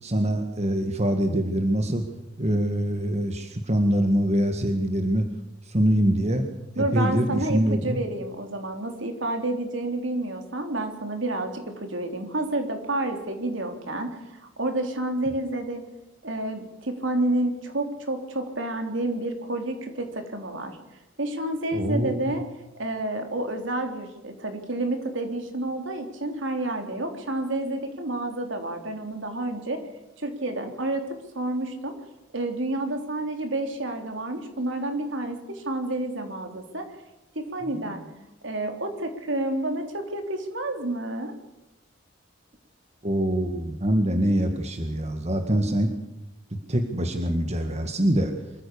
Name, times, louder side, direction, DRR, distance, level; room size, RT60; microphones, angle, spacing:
voice 1, 0.0-2.0 2.4-5.3 5.6-6.4 6.8-8.0 21.7-22.4 37.6-37.8 43.0-45.9 46.5-48.3, right 1 dB, 35° right, 5 dB, 1.9 m, -24 dB
voice 2, 6.8-15.8 16.2-20.8 21.2-22.4 22.7-29.8 30.2-31.1 31.3-31.9 32.3-36.9 37.4-38.0 38.4-41.3, right 1 dB, 65° right, 5 dB, 3.6 m, -29 dB
25.5 x 14.5 x 7.1 m, 0.98 s
head